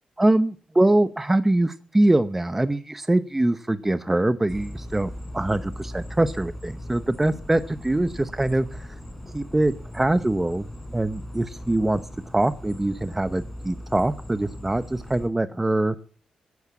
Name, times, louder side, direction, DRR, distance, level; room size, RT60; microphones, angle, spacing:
voice 1, 0.2-8.9 9.3-10.7 10.9-12.0 12.3-15.9, right 1 dB, 10° right, 12 dB, 0.7 m, -23 dB
sound 1, 4.5-15.3, left 1 dB, 5° left, 3.8 m, -39 dB
15.0 x 11.0 x 8.4 m, 0.43 s
wide cardioid pair, 155°, 2 cm